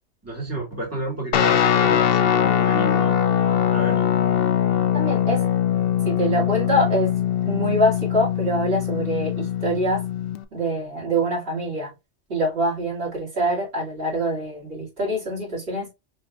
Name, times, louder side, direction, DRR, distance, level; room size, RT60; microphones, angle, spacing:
voice 1, 0.2-3.2 3.7-4.1, right 1 dB, 10° right, 2.2 m, -31 dB
Guitar, 1.3-10.4, left 9 dB, 65° left, 0.7 m, -21 dB
voice 2, 4.9-5.4 6.0-7.2 7.4-10.0 10.5-11.9 12.3-15.9, right 1 dB, 55° right, 2.8 m, -24 dB
5.1 x 3.4 x 2.4 m
omnidirectional pair, 1.2 m